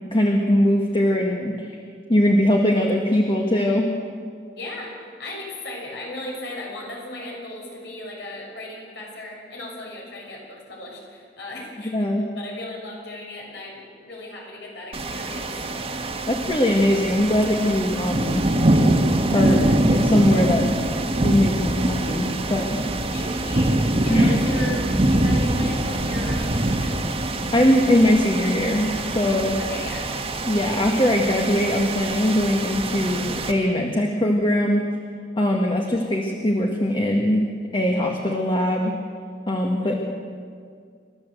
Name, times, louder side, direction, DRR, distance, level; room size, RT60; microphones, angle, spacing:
voice 1, 0.1-1.7 2.1-3.9 11.9-12.3 16.3-18.4 19.3-19.6 19.9-20.7 21.2-22.8 24.1-24.3 27.5-29.6 30.5-34.8 35.4-37.5 37.7-38.9 39.5-39.9, left 1 dB, 30° left, 0 dB, 1.8 m, -21 dB
voice 2, 4.5-12.1 12.3-16.1 23.1-27.1 29.6-30.1 39.8-39.9, left 1 dB, 70° left, -2 dB, 6.7 m, -36 dB
sound 1, 14.9-33.5, right 1 dB, 35° right, 1.7 m, -24 dB
29.0 x 13.5 x 8.0 m, 2.1 s
head